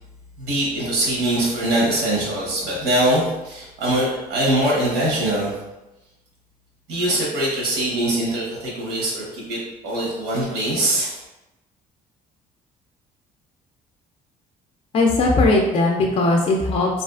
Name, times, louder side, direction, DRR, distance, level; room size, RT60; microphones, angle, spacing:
voice 1, 0.4-5.5 6.9-11.1, right 1 dB, 90° right, -4 dB, 0.8 m, -22 dB
voice 2, 14.9-17.0, left 2 dB, 35° left, 0 dB, 0.4 m, -18 dB
2.4 x 2.4 x 2.3 m, 0.98 s
cardioid pair, 110°, 17 cm